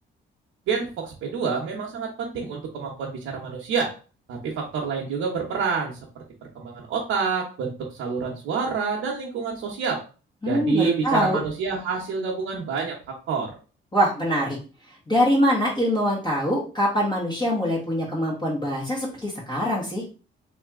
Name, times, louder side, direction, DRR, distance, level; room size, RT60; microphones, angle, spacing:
voice 1, 0.7-3.9 4.3-5.9 6.5-10.0 10.5-13.5, right 5 dB, 85° right, -3 dB, 1.0 m, -28 dB
voice 2, 10.4-11.4 13.9-14.6 15.1-20.0, equal, 20° left, -5 dB, 1.7 m, -23 dB
3.3 x 2.9 x 3.6 m, 0.35 s
cardioid pair, 90°, 20 cm